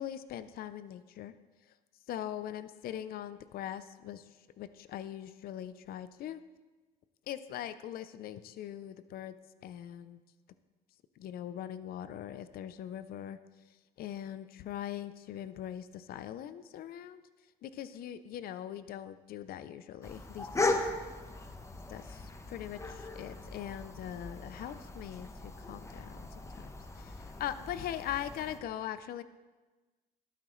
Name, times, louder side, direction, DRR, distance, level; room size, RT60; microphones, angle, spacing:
voice 1, 0.0-1.3 2.1-4.2 4.6-6.4 7.3-9.3 9.6-10.2 11.2-13.4 14.0-17.2 17.6-20.8 21.9-22.2 22.5-26.3 27.0-27.1 27.4-29.2, left 11 dB, 60° left, 13 dB, 0.6 m, -41 dB
sound 1, 20.0-28.6, left 2 dB, 15° left, 1.0 m, -38 dB
13.5 x 11.5 x 3.1 m, 1.2 s
cardioid pair, 110°, 17 cm